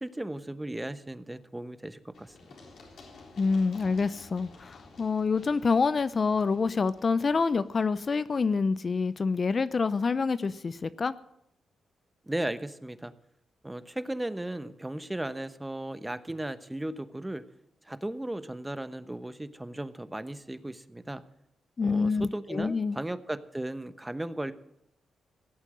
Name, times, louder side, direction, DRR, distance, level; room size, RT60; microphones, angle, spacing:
voice 1, 0.0-2.5 12.3-13.1 13.6-17.5 17.8-21.2 21.8-24.5, right 1 dB, 15° right, 13 dB, 1.0 m, -36 dB
Run, 2.1-9.8, left 3 dB, 70° left, 3.7 m, -53 dB
voice 2, 3.4-11.1 21.8-23.0, left 4 dB, 45° left, 15 dB, 0.6 m, -27 dB
17.0 x 8.2 x 7.6 m, 0.79 s
supercardioid pair, 55°, 0 cm